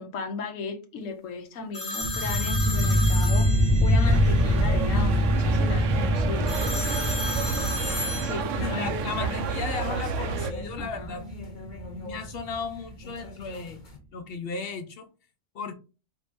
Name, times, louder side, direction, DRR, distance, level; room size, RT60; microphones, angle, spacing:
voice 1, 0.0-6.6 8.2-9.4 10.8-11.1, left 3 dB, 80° left, 1.1 m, -36 dB
sound 1, 1.7-4.2 6.5-10.7 11.1-12.2 13.0-13.9, left 3 dB, 40° left, 1.3 m, -35 dB
sound 2, 2.0-13.0, equal, 10° right, 0.4 m, -25 dB
sound 3, 4.0-10.5, right 6 dB, 75° right, 0.9 m, -31 dB
voice 2, 8.6-11.3 12.0-13.8 14.1-15.1 15.5-15.7, left 4 dB, 60° left, 0.7 m, -35 dB
4.5 x 2.7 x 3.4 m
omnidirectional pair, 1.3 m